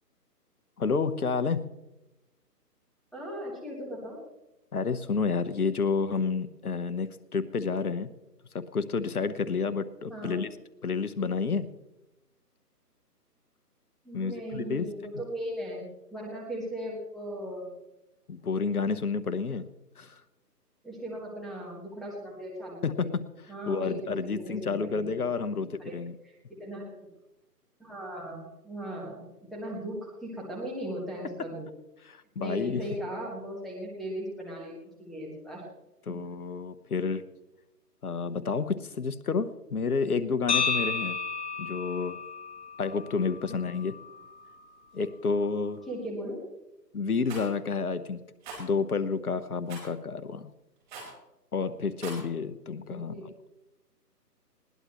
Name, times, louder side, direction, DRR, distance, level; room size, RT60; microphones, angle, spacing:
voice 1, 0.8-1.6 4.7-8.1 8.5-10.5 10.8-11.7 14.1-14.9 18.3-19.7 20.0-20.2 22.8-23.2 23.7-26.2 32.1-32.8 36.1-37.2 38.0-41.2 41.6-42.2 42.8-43.9 44.9-45.8 46.9-48.2 48.6-50.5 51.5-53.1, left 5 dB, 60° left, 14 dB, 1.2 m, -30 dB
voice 2, 3.1-4.2 10.1-10.4 14.0-17.7 20.8-22.9 23.5-25.1 25.8-26.0 26.2-26.3 26.6-27.1 27.8-31.7 32.4-35.6 36.1-36.2 43.4-43.5 45.9-46.4 52.9-53.2, right 1 dB, ahead, -3 dB, 1.4 m, -38 dB
sound 1, 40.5-44.6, left 5 dB, 45° left, 3.1 m, -32 dB
Rattle, 47.3-47.5 48.4-48.6 49.7-49.9 50.9-51.2 51.9-52.2, right 3 dB, 30° right, 4.8 m, -41 dB
20.5 x 17.5 x 3.1 m, 0.96 s
figure-of-eight pair, 150°, 49 cm